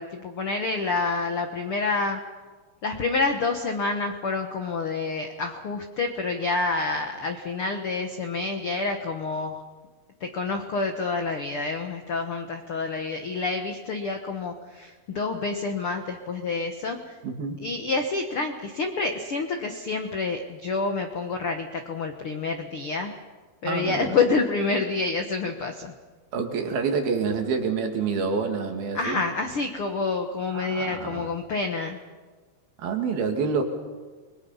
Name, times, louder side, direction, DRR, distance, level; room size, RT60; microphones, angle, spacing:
voice 1, 0.0-2.2 2.8-9.6 10.2-17.2 17.6-23.1 23.6-25.9 28.9-32.0, left 3 dB, 80° left, 5 dB, 1.2 m, -28 dB
voice 2, 17.2-17.6 23.6-24.1 26.3-29.2 30.5-31.3 32.8-33.6, right 5 dB, 70° right, 4 dB, 3.9 m, -27 dB
30.0 x 21.5 x 5.6 m, 1.4 s
omnidirectional pair, 4.7 m